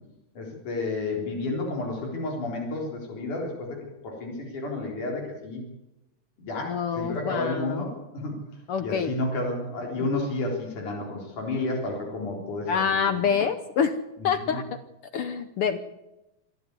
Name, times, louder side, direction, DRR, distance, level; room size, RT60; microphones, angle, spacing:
voice 1, 0.4-3.8 4.0-5.6 6.4-8.4 8.8-13.2 14.2-14.6, left 2 dB, 85° left, 0 dB, 5.5 m, -31 dB
voice 2, 6.7-7.8 8.7-9.1 12.7-14.0 14.2-14.8 15.1-15.8, left 6 dB, 65° left, 10 dB, 1.5 m, -26 dB
26.5 x 12.0 x 9.7 m, 0.96 s
omnidirectional pair, 3.5 m